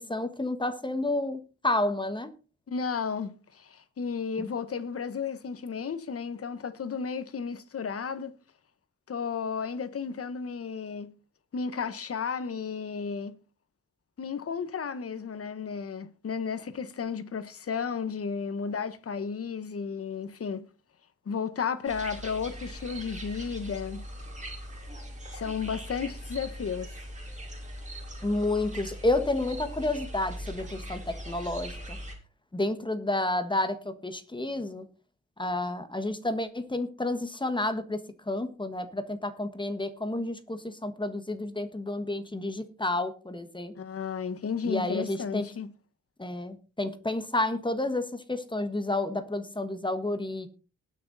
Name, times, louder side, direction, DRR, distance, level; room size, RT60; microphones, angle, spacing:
voice 1, 0.0-2.3 4.4-4.5 28.2-32.0 32.5-34.8 35.4-43.7 44.6-45.4 46.2-50.5, left 2 dB, 15° left, 1.4 m, -30 dB
voice 2, 2.7-8.3 9.1-11.1 11.5-13.3 14.2-20.7 21.3-24.0 25.3-26.9 43.7-45.7, left 6 dB, 50° left, 1.2 m, -33 dB
sound 1, 21.9-32.1, equal, 25° right, 3.7 m, -40 dB
19.5 x 6.5 x 4.1 m
wide cardioid pair, 120°, 29 cm